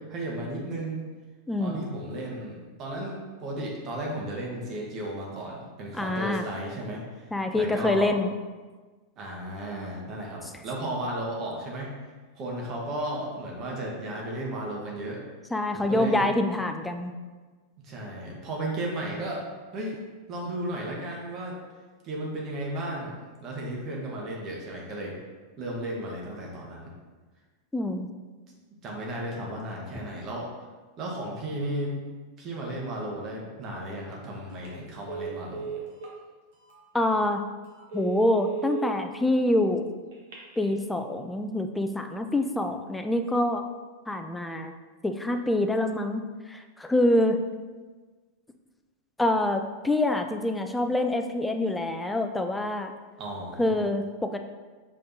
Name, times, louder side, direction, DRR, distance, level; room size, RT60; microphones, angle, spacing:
voice 1, 0.1-1.0 1.6-7.3 7.5-8.1 9.2-11.9 12.4-15.2 15.7-16.3 17.8-20.0 20.3-21.6 22.0-25.2 25.6-26.9 28.8-30.5 31.0-32.0 32.4-35.7 53.2-53.8, right 1 dB, 35° right, -2 dB, 1.1 m, -34 dB
voice 2, 1.5-1.9 5.9-6.5 7.3-8.3 15.5-17.1 27.7-28.1 36.9-37.4 37.9-39.9 40.6-43.6 44.1-44.7 45.0-46.2 46.5-47.4 49.2-52.9 53.6-54.4, left 1 dB, 5° left, 6 dB, 0.3 m, -26 dB
Telephone, 34.5-34.7 35.1-36.1 36.7-36.8 37.2-37.3 37.8-38.9 40.1-40.7, right 9 dB, 55° right, 0.9 m, -35 dB
5.4 x 3.3 x 2.7 m, 1.3 s
figure-of-eight pair, 90°, 0 cm